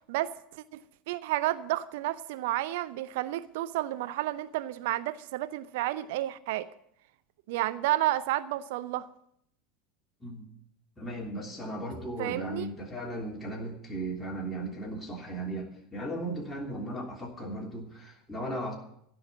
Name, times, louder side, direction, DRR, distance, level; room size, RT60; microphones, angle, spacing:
voice 1, 0.1-0.8 1.1-6.7 7.5-9.1 12.2-12.7, right 15 dB, 60° right, 14 dB, 0.6 m, -31 dB
voice 2, 11.0-18.7, right 1 dB, 10° left, -2 dB, 3.1 m, -36 dB
15.0 x 5.9 x 9.6 m, 0.71 s
figure-of-eight pair, 75°, 0 cm